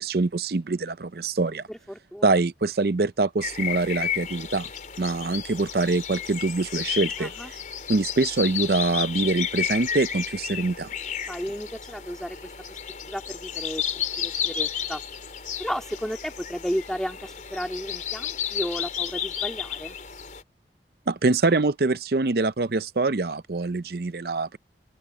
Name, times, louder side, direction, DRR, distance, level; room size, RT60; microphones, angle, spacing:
voice 1, 0.0-1.6 2.2-4.7 5.0-7.3 7.9-10.9 21.1-24.6, right 3 dB, 60° right, 0.6 m, -24 dB
voice 2, 1.7-2.3 7.2-7.5 11.3-12.8 13.1-15.0 15.6-20.0, equal, 5° left, 2.8 m, -33 dB
sound 1, 3.4-20.4, left 8 dB, 45° left, 4.3 m, -32 dB
open air
head